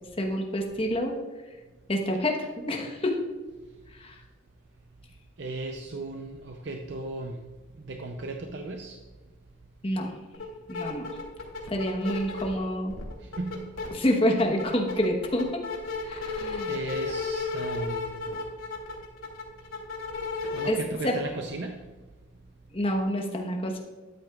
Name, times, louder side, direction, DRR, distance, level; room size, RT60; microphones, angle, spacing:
voice 1, 0.2-1.1 1.9-3.2 4.0-4.2 9.8-10.1 10.7-11.1 11.7-12.9 13.9-15.6 16.0-16.7 20.6-20.8 21.0-21.1 22.7-23.8, equal, 25° left, 2 dB, 1.0 m, -27 dB
voice 2, 5.4-7.5 7.8-9.0 13.2-13.8 16.7-18.3 20.5-21.8, right 2 dB, 55° right, 3 dB, 0.6 m, -36 dB
sound 1, 10.3-10.4 10.7-12.6 12.9-13.9 14.2-20.7, left 4 dB, 90° left, 2.3 m, -33 dB
13.0 x 9.0 x 2.4 m, 1.3 s
head